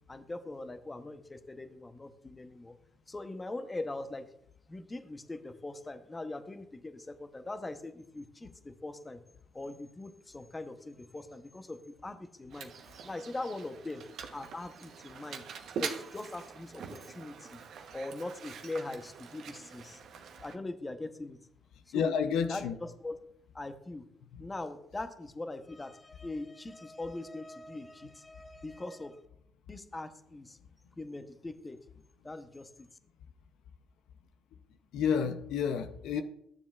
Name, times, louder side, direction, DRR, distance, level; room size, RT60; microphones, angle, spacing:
voice 1, 0.1-2.8 3.1-4.3 4.7-9.2 9.5-12.7 13.0-15.4 15.8-17.6 17.9-20.0 20.4-21.4 21.9-22.2 22.5-23.2 23.5-24.1 24.4-29.2 29.7-30.6 31.0-31.8 32.2-32.9, left 2 dB, 20° left, 0.8 m, -41 dB
Mechanisms, 12.5-20.6, right 6 dB, 65° right, 0.9 m, -44 dB
voice 2, 21.9-22.7 34.9-36.2, left 7 dB, 75° left, 0.5 m, -29 dB
12.5 x 7.1 x 2.4 m
supercardioid pair, 65°, 0 cm